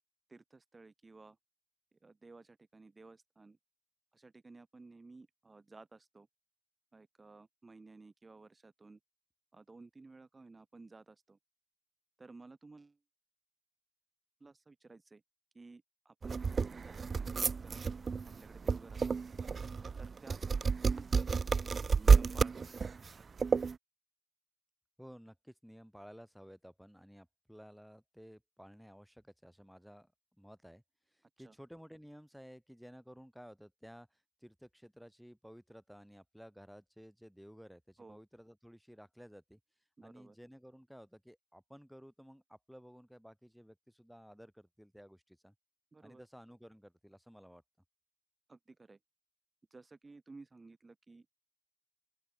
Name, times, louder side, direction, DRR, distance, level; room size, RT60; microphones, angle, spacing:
voice 1, 0.3-1.4 2.0-3.6 4.1-6.3 6.9-9.0 9.5-11.4 12.2-13.0 14.4-15.2 15.5-17.9 18.2-19.2 20.0-22.9 31.4-31.5 38.0-38.2 40.0-40.4 45.9-46.2 48.5-49.0 49.7-51.3, right 3 dB, 45° right, 7.8 m, -56 dB
sound 1, 16.2-23.8, right 5 dB, 70° right, 0.6 m, -30 dB
voice 2, 25.0-30.1 30.4-30.8 31.4-34.1 34.4-39.6 40.0-45.5 46.0-47.6, equal, ahead, 7.5 m, -55 dB
open air
cardioid pair, 55°, 0 cm